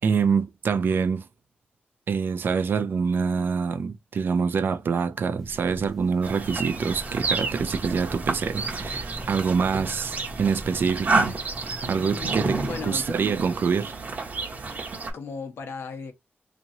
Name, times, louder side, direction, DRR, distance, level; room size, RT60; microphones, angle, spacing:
voice 1, 0.0-1.3 2.1-11.4 11.8-12.6 12.8-13.9, right 5 dB, 60° right, 0.5 m, -25 dB
sound 1, 5.4-13.4, equal, ahead, 0.5 m, -42 dB
sound 2, 6.2-15.1, right 3 dB, 45° right, 1.0 m, -30 dB
voice 2, 11.8-13.2 15.0-16.1, left 5 dB, 85° left, 1.0 m, -37 dB
4.1 x 3.0 x 2.6 m
wide cardioid pair, 170°, 4 cm